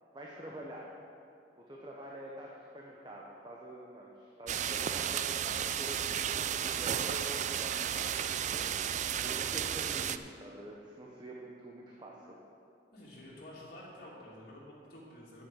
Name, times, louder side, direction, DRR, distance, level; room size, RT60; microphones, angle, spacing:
voice 1, 0.1-0.9 1.6-8.6 9.2-12.4, right 1 dB, 25° right, -2 dB, 1.0 m, -46 dB
sound 1, 4.5-10.2, right 9 dB, 45° right, 0.3 m, -33 dB
voice 2, 12.9-15.4, left 1 dB, 55° left, -7 dB, 2.7 m, -50 dB
8.7 x 8.4 x 6.6 m, 2.5 s
head